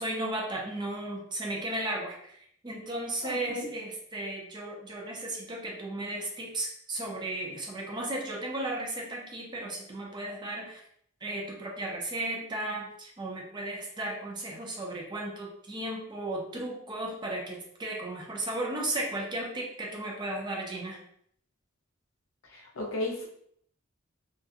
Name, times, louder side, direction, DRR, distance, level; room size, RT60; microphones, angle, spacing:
voice 1, 0.0-2.4 2.6-10.8 11.2-21.0, right 1 dB, 20° right, -1 dB, 0.4 m, -35 dB
voice 2, 3.2-3.7 22.5-23.3, left 2 dB, 70° left, 0 dB, 0.6 m, -34 dB
2.4 x 2.2 x 2.6 m, 0.66 s
head